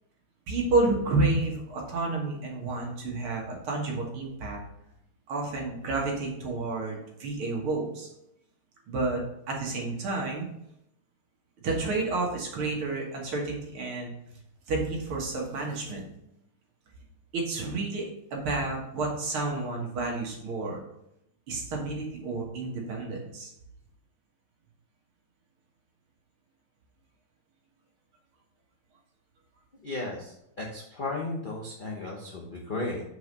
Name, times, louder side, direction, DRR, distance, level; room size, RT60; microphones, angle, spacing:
voice 1, 0.5-4.6 5.3-8.1 8.9-9.2 9.5-10.5 11.6-14.1 14.7-16.1 17.3-20.8 21.5-23.5, right 3 dB, 80° right, -1 dB, 2.3 m, -30 dB
voice 2, 29.8-33.0, left 2 dB, 65° left, -2 dB, 0.5 m, -35 dB
4.8 x 4.7 x 5.3 m, 0.81 s
omnidirectional pair, 2.3 m